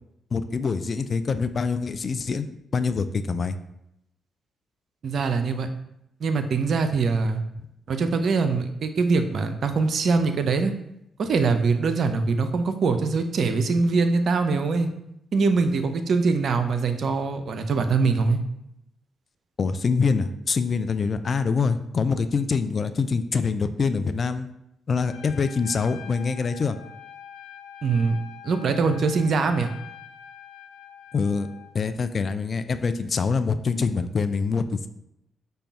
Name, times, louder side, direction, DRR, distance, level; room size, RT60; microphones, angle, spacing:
voice 1, 0.3-2.5 2.7-3.6 19.6-24.5 24.9-26.8 31.1-31.5 31.7-34.9, left 5 dB, 50° left, 11 dB, 0.3 m, -25 dB
voice 2, 5.0-5.7 6.2-7.4 7.9-10.7 11.2-14.9 15.3-18.4 27.8-28.2 28.4-29.7, right 4 dB, 60° right, 8 dB, 0.4 m, -23 dB
Trumpet, 25.0-31.7, left 9 dB, 80° left, 0.7 m, -45 dB
5.1 x 2.3 x 4.5 m, 0.82 s
hypercardioid pair, 40°, 0 cm